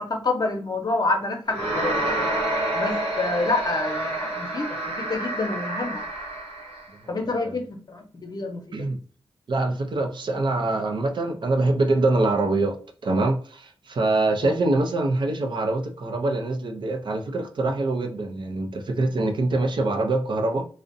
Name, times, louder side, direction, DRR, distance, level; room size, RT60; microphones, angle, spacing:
voice 1, 0.0-2.3 2.7-6.0 7.1-8.6 14.4-14.6, left 3 dB, 45° left, 0.7 m, -28 dB
sound 1, 1.5-6.9, right 1 dB, 90° right, 0.8 m, -28 dB
voice 2, 7.1-7.6 8.7-9.0 9.5-20.7, right 2 dB, 55° right, 0.5 m, -24 dB
2.5 x 2.1 x 2.5 m
cardioid pair, 80°, 10 cm